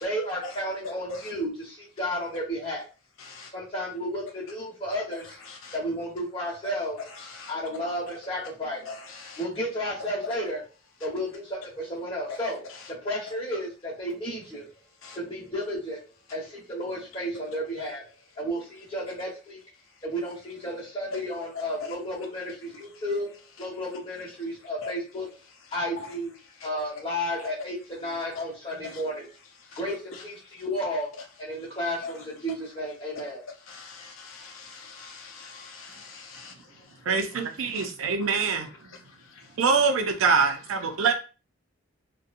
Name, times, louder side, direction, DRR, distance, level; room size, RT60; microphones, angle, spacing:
voice 1, 0.0-2.9 3.5-5.4 5.7-7.0 7.5-8.9 9.4-10.6 11.0-14.7 15.1-18.1 18.4-19.6 20.0-25.3 25.7-26.3 26.6-29.3 29.8-31.1 31.4-33.4, equal, 25° left, -6 dB, 1.1 m, -32 dB
voice 2, 33.7-36.5 37.7-37.9, left 4 dB, 75° left, 2 dB, 0.6 m, -41 dB
voice 3, 37.1-38.7 39.6-41.1, right 5 dB, 80° right, 6 dB, 0.5 m, -24 dB
2.7 x 2.2 x 2.5 m, 0.33 s
head